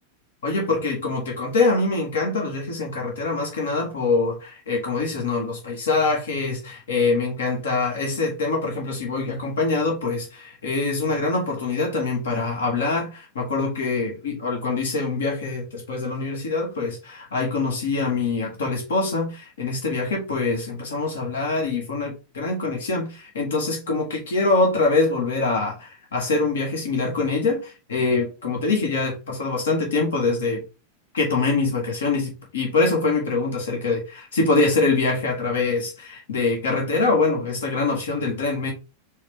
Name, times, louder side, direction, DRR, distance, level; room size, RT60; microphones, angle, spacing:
voice 1, 0.4-30.6 31.1-38.7, left 3 dB, 65° left, 1.7 m, -24 dB
4.7 x 2.6 x 3.4 m
figure-of-eight pair, 90°, 0 cm